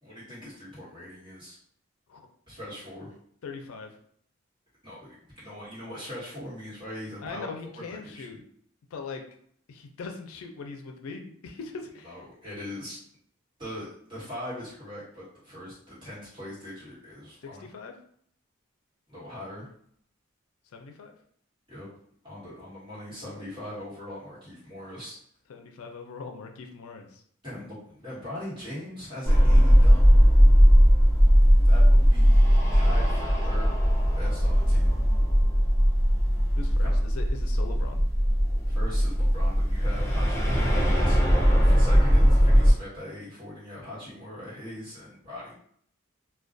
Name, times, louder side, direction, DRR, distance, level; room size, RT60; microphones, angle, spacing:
voice 1, 0.0-1.6 2.5-3.1 4.8-8.4 12.0-13.0 13.6-17.7 19.1-19.7 21.7-21.9 22.2-25.1 27.4-30.0 31.6-32.4 32.7-33.8 34.1-34.9 36.8-37.0 38.7-45.5, left 1 dB, 25° right, -10 dB, 1.3 m, -41 dB
voice 2, 3.4-3.9 7.2-8.4 8.9-9.2 9.7-12.2 17.4-17.9 20.7-21.1 25.5-27.2 36.6-38.0, left 4 dB, 85° left, 4 dB, 0.4 m, -40 dB
sound 1, 29.3-42.7, equal, 15° left, 0.4 m, -19 dB
2.3 x 2.2 x 2.5 m, 0.64 s
head